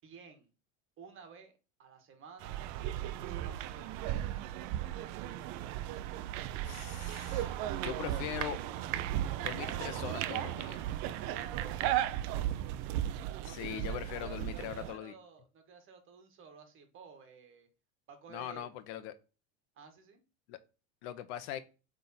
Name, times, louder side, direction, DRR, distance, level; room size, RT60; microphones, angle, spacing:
voice 1, 0.0-0.5 1.0-2.6 3.2-4.9 11.2-12.0 13.4-17.7 18.1-18.7 19.8-20.2, right 6 dB, 35° right, 1.8 m, -53 dB
sound 1, 2.4-14.9, right 12 dB, 55° right, 0.6 m, -36 dB
voice 2, 6.6-7.5 7.8-8.6 9.4-10.9 13.4-15.1 18.3-19.1 20.5-20.6 21.0-21.6, left 11 dB, 75° left, 1.0 m, -41 dB
8.1 x 3.7 x 4.3 m
cardioid pair, 150°, 34 cm